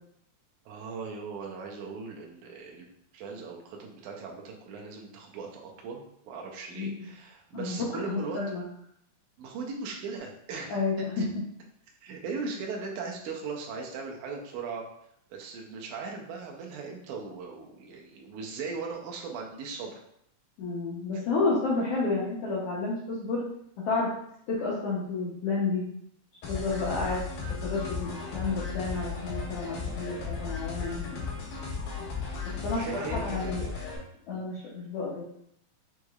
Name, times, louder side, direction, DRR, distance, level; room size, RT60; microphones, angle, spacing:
voice 1, 0.7-2.9 3.1-8.6 9.4-10.8 11.2-11.3 12.0-14.8 15.3-19.9 21.1-21.2 29.8-30.0 32.4-33.7 34.3-34.5, right 4 dB, 75° right, 0 dB, 2.1 m, -39 dB
voice 2, 7.5-8.6 10.7-11.3 20.6-23.4 23.8-24.1 24.5-25.8 26.5-27.2 27.6-31.2 32.4-33.6 34.3-35.2, left 3 dB, 75° left, -7 dB, 1.4 m, -30 dB
sound 1, 26.4-34.0, left 5 dB, 90° left, 2.9 m, -35 dB
6.3 x 3.2 x 2.3 m, 0.72 s
omnidirectional pair, 3.7 m